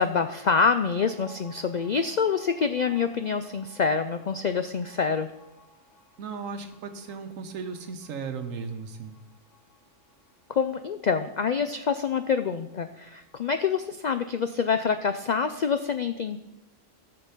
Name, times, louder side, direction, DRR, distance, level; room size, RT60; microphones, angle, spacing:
voice 1, 0.0-5.3 10.5-16.4, left 6 dB, 75° left, 9 dB, 0.4 m, -26 dB
sound 1, 0.8-13.9 14.2-14.3 14.6-15.4, left 1 dB, 5° right, 4.4 m, -57 dB
voice 2, 6.2-9.2, right 5 dB, 90° right, 6 dB, 1.2 m, -36 dB
14.0 x 6.7 x 5.7 m, 0.95 s
omnidirectional pair, 1.3 m